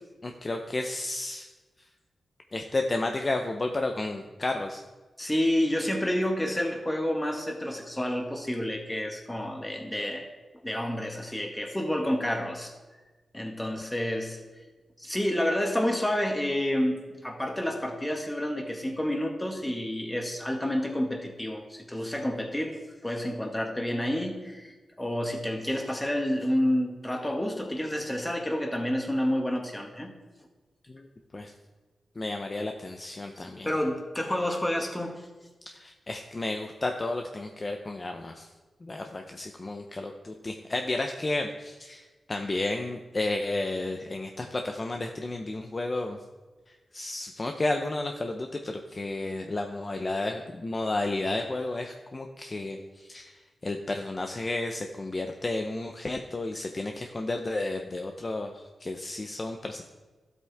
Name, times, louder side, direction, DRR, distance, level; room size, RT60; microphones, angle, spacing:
voice 1, 0.2-1.5 2.5-4.8 30.9-31.1 31.3-31.5 32.2-33.7 35.7-38.5 38.8-46.2 46.9-59.8, left 2 dB, 35° left, 3 dB, 0.8 m, -32 dB
voice 2, 5.2-10.3 10.6-12.7 13.3-14.4 15.0-24.7 25.0-30.1 33.7-35.2, left 1 dB, 15° left, 3 dB, 1.8 m, -29 dB
12.5 x 8.2 x 3.6 m, 1.2 s
cardioid pair, 65°, 0 cm